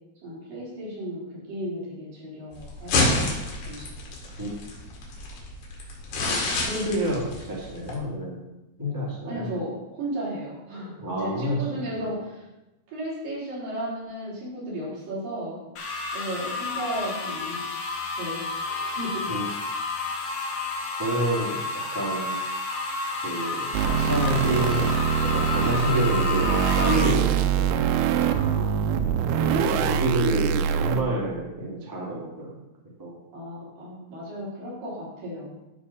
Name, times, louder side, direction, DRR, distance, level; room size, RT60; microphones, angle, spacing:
voice 1, 0.2-3.2 3.6-3.9 9.2-12.5 12.9-15.6 16.1-17.6 18.2-19.3 28.2-28.8 33.3-35.6, right 1 dB, 55° right, -7 dB, 5.0 m, -34 dB
sound 1, 2.5-7.9, left 2 dB, 75° left, 4.0 m, -29 dB
voice 2, 6.7-8.4 8.8-9.5 11.0-12.1 19.3-19.4 21.0-21.6 21.9-22.4 23.2-28.3 29.3-32.6 33.0-33.2, right 1 dB, 15° right, -5 dB, 0.8 m, -28 dB
sound 2, 15.8-27.1, left 3 dB, 55° left, 2.2 m, -30 dB
sound 3, 23.7-31.0, right 8 dB, 80° right, 2.4 m, -24 dB
12.5 x 4.6 x 5.6 m, 0.99 s
omnidirectional pair, 4.9 m